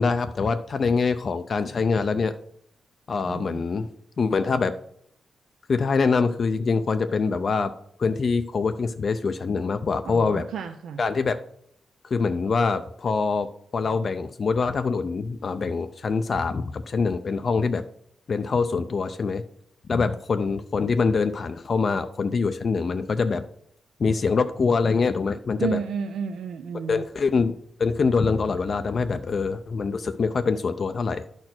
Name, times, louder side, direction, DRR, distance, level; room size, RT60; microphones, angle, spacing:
voice 1, 0.0-2.3 3.1-3.9 4.2-4.7 5.7-7.7 8.0-10.5 11.0-11.4 12.0-13.5 13.7-17.8 18.3-19.4 19.9-23.5 24.0-25.8 26.9-27.5 27.8-31.2, left 4 dB, 40° left, 9 dB, 0.4 m, -24 dB
voice 2, 3.3-3.6 10.1-11.0 25.6-27.0, right 7 dB, 90° right, 6 dB, 0.6 m, -32 dB
10.5 x 4.4 x 5.9 m, 0.68 s
wide cardioid pair, 155°, 0 cm